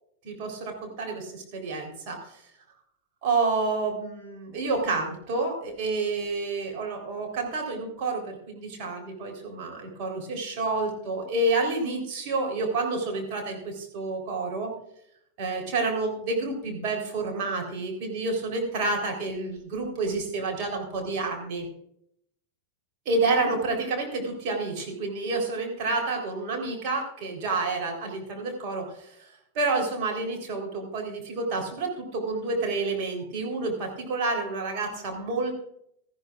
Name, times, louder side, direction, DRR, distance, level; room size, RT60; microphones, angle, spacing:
voice 1, 0.2-2.4 3.2-14.7 15.4-21.6 23.1-29.3 29.5-35.5, right 3 dB, 45° right, 1 dB, 3.8 m, -29 dB
18.0 x 13.5 x 2.5 m, 0.73 s
figure-of-eight pair, 90°, 0 cm